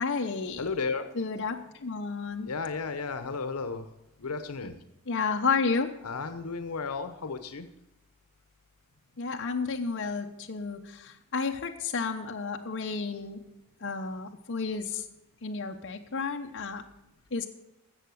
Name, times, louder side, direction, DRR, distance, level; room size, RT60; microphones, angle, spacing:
voice 1, 0.0-0.7 1.1-2.5 5.1-5.9 9.2-13.4 13.8-15.1 15.4-16.8 17.3-17.5, left 4 dB, 55° left, 2 dB, 0.8 m, -31 dB
voice 2, 0.6-1.0 2.4-3.8 4.2-4.7 6.0-7.7, left 4 dB, 85° left, 10 dB, 0.9 m, -33 dB
13.5 x 7.7 x 6.3 m, 0.90 s
head